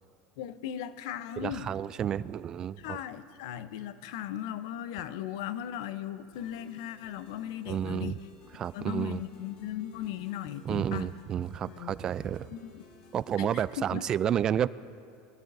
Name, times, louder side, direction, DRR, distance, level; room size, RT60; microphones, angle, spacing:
voice 1, 0.4-1.7 2.8-8.2 8.7-11.1 11.7-12.0 12.5-12.8 13.4-14.0, left 11 dB, 75° left, 13 dB, 0.7 m, -37 dB
voice 2, 1.4-3.0 7.7-8.2 8.5-9.2 10.7-12.5 13.1-14.7, right 9 dB, 30° right, 18 dB, 0.3 m, -30 dB
sound 1, 6.3-13.7, left 3 dB, 55° left, 3.1 m, -56 dB
24.0 x 15.0 x 2.7 m, 2.4 s
supercardioid pair, 125°, 2 cm